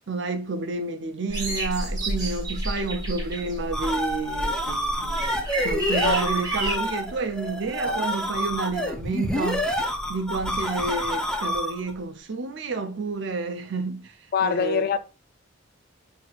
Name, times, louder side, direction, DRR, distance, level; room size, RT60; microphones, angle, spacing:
voice 1, 0.1-9.7 10.1-14.8, right 3 dB, 65° right, 0.6 m, -30 dB
sound 1, 1.3-6.7, right 1 dB, 20° right, 1.4 m, -30 dB
sound 2, 3.4-11.9, equal, 5° left, 0.6 m, -28 dB
voice 2, 14.3-15.0, left 7 dB, 50° left, 0.4 m, -24 dB
5.9 x 2.9 x 2.4 m
head